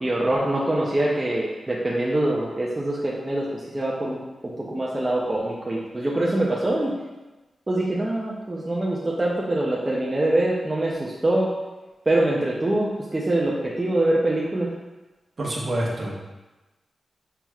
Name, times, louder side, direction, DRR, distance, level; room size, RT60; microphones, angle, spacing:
voice 1, 0.0-3.5 3.7-6.9 7.7-11.5 12.1-14.7, right 1 dB, 25° right, -5 dB, 0.6 m, -24 dB
voice 2, 15.4-16.2, right 1 dB, 50° right, -4 dB, 1.0 m, -27 dB
5.6 x 3.0 x 2.4 m, 1.1 s
cardioid pair, 80°, 0 cm